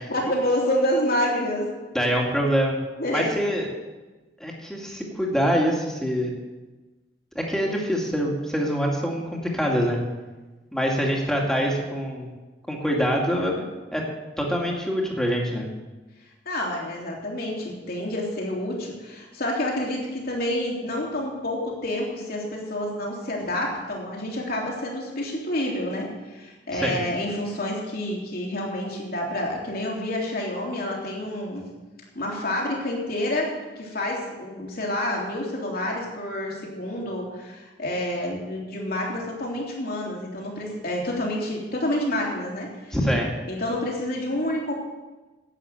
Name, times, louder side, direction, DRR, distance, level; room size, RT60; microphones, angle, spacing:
voice 1, 0.1-1.7 3.0-3.3 16.4-31.7 32.1-43.0 43.5-44.7, left 1 dB, 60° left, -2 dB, 3.2 m, -28 dB
voice 2, 1.9-2.8 3.1-3.7 4.4-6.3 7.3-10.0 10.7-12.3 12.7-14.0 14.4-15.7 26.7-27.0 42.9-43.3, equal, 5° left, -1 dB, 2.4 m, -25 dB
11.0 x 8.7 x 7.9 m, 1.2 s
head